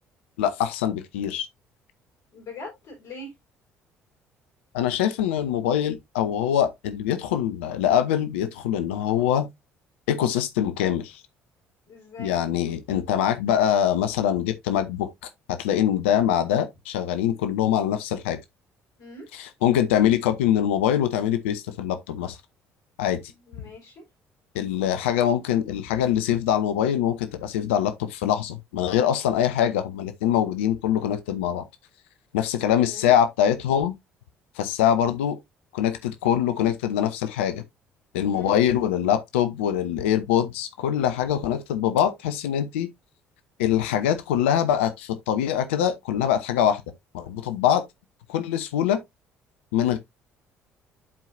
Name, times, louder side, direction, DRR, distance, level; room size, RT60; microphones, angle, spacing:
voice 1, 0.4-1.5 4.7-9.5 10.1-11.2 12.2-15.1 15.5-18.4 19.3-22.4 23.0-23.2 24.5-31.6 32.3-33.9 34.6-35.4 35.7-37.6 38.1-42.9 43.6-46.8 47.1-47.8 48.3-49.0 49.7-50.0, left 10 dB, 70° left, 0.7 m, -23 dB
voice 2, 2.3-3.3 11.9-12.4 19.0-19.3 23.3-24.0 32.8-33.1 38.3-38.6, left 1 dB, 55° left, 4.3 m, -41 dB
11.0 x 4.6 x 2.6 m
figure-of-eight pair, 50°, 7 cm